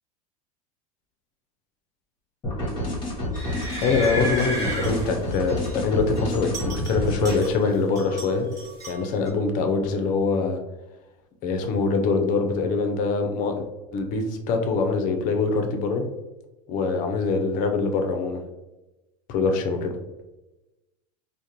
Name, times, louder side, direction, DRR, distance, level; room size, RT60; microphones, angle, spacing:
sound 1, 2.4-7.5, left 1 dB, 25° left, 1.0 m, -29 dB
sound 2, 3.3-5.8 6.2-7.7 8.0-9.3, right 1 dB, 20° right, 1.1 m, -33 dB
voice 1, 3.8-8.5 8.9-10.6 11.4-13.5 13.9-16.1 16.7-18.4 19.3-19.9, left 4 dB, 45° left, 5 dB, 0.5 m, -24 dB
2.5 x 2.1 x 2.8 m, 1.0 s
supercardioid pair, 120°, 19 cm